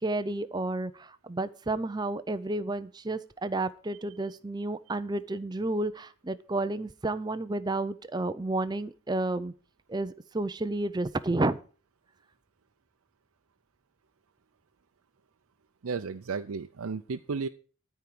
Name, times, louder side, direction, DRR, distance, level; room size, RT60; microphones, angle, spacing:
voice 1, 0.0-9.5 9.9-11.6, right 2 dB, 20° right, 14 dB, 0.5 m, -31 dB
voice 2, 15.8-17.5, right 5 dB, 85° right, 7 dB, 0.5 m, -33 dB
13.5 x 4.7 x 8.5 m, 0.40 s
head